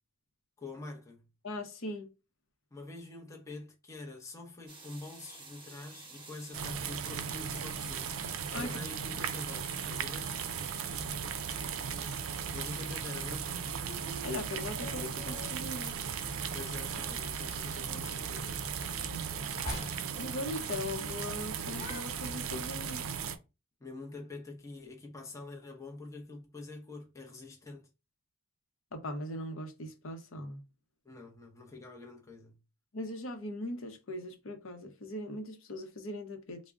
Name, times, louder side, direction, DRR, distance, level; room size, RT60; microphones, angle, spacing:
voice 1, 0.6-1.3 2.7-8.1 8.5-10.4 12.5-13.7 16.5-18.6 23.8-27.9 31.0-32.6, left 3 dB, 15° left, 0.6 m, -46 dB
voice 2, 1.4-2.1 8.5-8.8 14.2-16.0 19.1-19.4 20.2-23.0 28.9-30.6 32.9-36.6, left 1 dB, 65° left, 0.7 m, -40 dB
sound 1, 4.7-21.4, right 3 dB, 25° right, 0.9 m, -54 dB
sound 2, 6.5-23.4, right 7 dB, 75° right, 0.4 m, -37 dB
sound 3, 10.9-22.8, equal, 35° left, 1.2 m, -47 dB
3.5 x 2.1 x 3.5 m
head